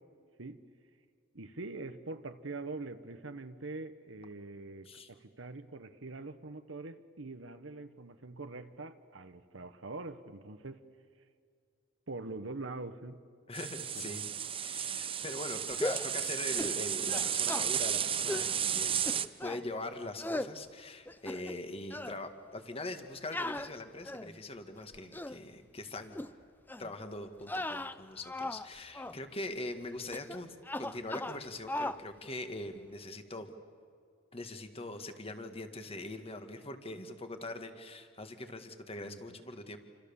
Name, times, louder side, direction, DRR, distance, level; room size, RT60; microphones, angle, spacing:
voice 1, 1.3-10.8 12.1-13.2 13.9-14.1 39.0-39.4, right 3 dB, 80° right, 8 dB, 1.2 m, -44 dB
voice 2, 13.5-14.3 14.6-19.1 19.4-26.2 26.8-33.5 34.3-39.8, left 2 dB, 30° left, 7 dB, 1.9 m, -42 dB
sound 1, 13.5-19.3, right 8 dB, 30° right, 0.8 m, -33 dB
sound 2, 15.8-16.1 16.6-16.8 17.1-17.7 18.3-18.5 19.1-19.6 20.2-20.5 21.1-21.6 21.9-22.2 23.3-24.4 24.9-25.4 26.1-26.3 26.7-26.9 27.4-28.7 28.9-29.2 30.1-30.4 30.6-31.4 31.7-32.0, left 1 dB, 10° left, 0.6 m, -37 dB
28.5 x 26.0 x 7.2 m, 2.2 s
head